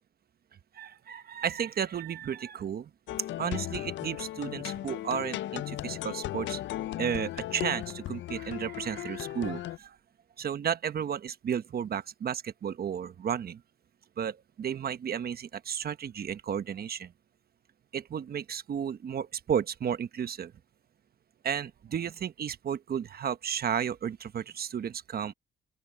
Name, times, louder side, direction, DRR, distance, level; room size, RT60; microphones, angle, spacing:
voice 1, 0.7-2.9 3.4-6.6 7.0-10.0 10.4-13.6 14.2-17.1 17.9-20.5 21.4-25.3, right 8 dB, 50° right, 1.0 m, -33 dB
sound 1, 3.1-9.8, left 14 dB, 70° left, 0.5 m, -36 dB
open air
cardioid pair, 90°, 20 cm